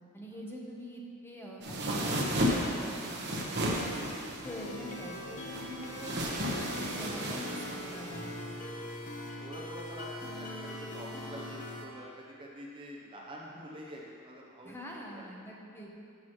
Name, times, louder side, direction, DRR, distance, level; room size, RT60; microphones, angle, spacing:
voice 1, 0.1-3.3 3.7-4.0 4.4-8.3 14.6-15.9, equal, 10° left, -2 dB, 0.9 m, -45 dB
sound 1, 1.6-8.3, equal, 50° right, 1.1 m, -34 dB
sound 2, 4.4-11.8, left 1 dB, 35° left, 1.0 m, -41 dB
voice 2, 9.4-15.3, equal, 25° right, -3 dB, 0.7 m, -47 dB
14.0 x 6.2 x 3.1 m, 2.5 s
head